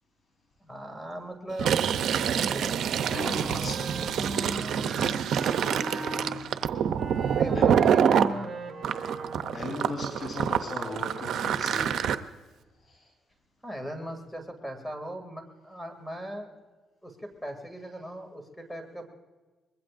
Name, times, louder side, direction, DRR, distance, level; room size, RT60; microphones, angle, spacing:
voice 1, 0.6-1.7 2.3-2.8 5.9-6.5 7.3-8.5 13.6-16.5 17.0-19.0, right 1 dB, 5° left, 5 dB, 2.6 m, -39 dB
Fill (with liquid), 1.5-8.3 8.8-12.1, right 8 dB, 70° right, 0.7 m, -26 dB
Wind instrument woodwind instrument, 3.0-6.3 6.9-9.7, right 2 dB, 35° right, 2.1 m, -38 dB
voice 2, 3.1-3.9 7.5-7.6 9.5-12.1 12.9-13.1, left 2 dB, 50° left, 0 dB, 4.1 m, -37 dB
24.5 x 21.5 x 2.6 m, 1.2 s
cardioid pair, 85°, 0 cm